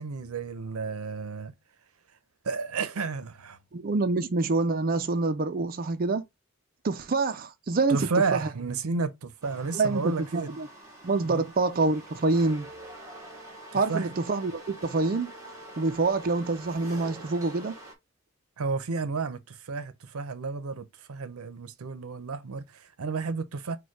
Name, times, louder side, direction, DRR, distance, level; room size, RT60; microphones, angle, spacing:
voice 1, 0.0-1.5 2.4-3.6 7.9-10.5 11.2-11.5 13.7-14.1 18.6-23.8, right 4 dB, 90° right, 0.6 m, -32 dB
voice 2, 3.7-6.2 6.8-8.5 9.7-10.7 11.0-12.7 13.7-15.3 15.8-17.7, right 3 dB, 40° right, 0.4 m, -26 dB
sound 1, 9.4-17.9, right 1 dB, 15° right, 1.0 m, -46 dB
4.3 x 2.2 x 4.6 m
head